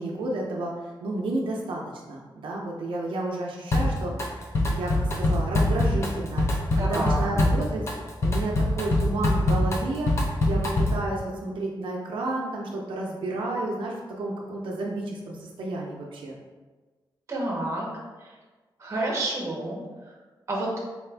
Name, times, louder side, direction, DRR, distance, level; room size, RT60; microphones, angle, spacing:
voice 1, 0.0-1.8 2.1-6.5 6.8-7.8 8.2-16.4, right 2 dB, 90° right, -2 dB, 0.5 m, -31 dB
Drum kit, 3.7-4.3 4.5-11.1, left 1 dB, 35° left, 0.5 m, -23 dB
voice 2, 6.8-7.3 17.3-17.9 18.2-18.3 18.8-20.1 20.5-20.7, right 2 dB, 35° right, -3 dB, 0.9 m, -29 dB
4.2 x 2.4 x 3.3 m, 1.3 s
wide cardioid pair, 175°, 8 cm